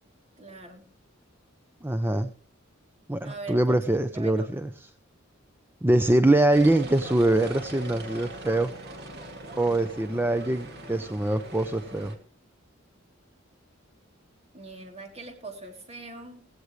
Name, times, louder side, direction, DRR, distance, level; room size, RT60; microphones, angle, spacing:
voice 1, 0.4-0.9 3.2-4.5 14.5-16.5, right 3 dB, 35° right, 3 dB, 3.2 m, -42 dB
voice 2, 1.8-2.3 3.1-4.7 5.8-8.7 9.6-12.1, right 1 dB, 10° right, 9 dB, 0.7 m, -23 dB
sound 1, 6.5-12.2, right 1 dB, 55° right, 2.6 m, -41 dB
16.5 x 16.5 x 3.2 m, 0.38 s
head